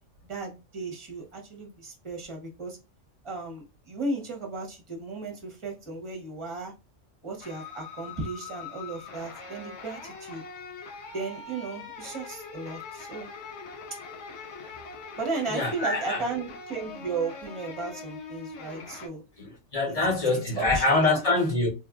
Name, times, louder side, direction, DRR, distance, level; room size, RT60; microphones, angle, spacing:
voice 1, 0.2-2.8 3.2-6.7 7.2-10.4 11.1-13.3 15.2-19.2 19.9-21.2, right 3 dB, 25° right, 0.9 m, -35 dB
sound 1, 7.4-19.1, left 4 dB, 70° left, 0.9 m, -42 dB
voice 2, 15.5-16.2 19.4-21.7, left 2 dB, 30° left, 1.0 m, -25 dB
3.5 x 2.5 x 2.3 m
omnidirectional pair, 1.2 m